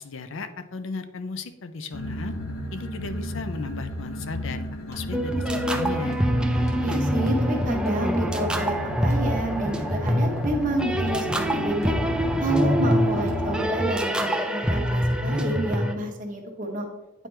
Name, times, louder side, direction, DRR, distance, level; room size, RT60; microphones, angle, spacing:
voice 1, 0.0-2.3 2.7-6.2, left 3 dB, 60° left, 10 dB, 0.5 m, -35 dB
sound 1, 1.9-13.6, left 1 dB, 80° left, 0.9 m, -33 dB
sound 2, 4.9-5.1 5.5-5.7 6.1-6.3 6.6-6.8 7.2-7.4 7.7-7.9 8.4-8.6 9.0-9.2 9.7-9.8 10.4-10.5 11.0-11.2 11.7-12.0 12.4-12.6 13.2-13.4, equal, 15° left, 1.0 m, -45 dB
sound 3, 5.1-15.9, equal, 5° right, 0.3 m, -25 dB
voice 2, 6.8-8.8 9.0-11.9 12.4-16.9, right 1 dB, 40° right, 1 dB, 1.0 m, -29 dB
9.1 x 4.4 x 3.3 m, 1.1 s
head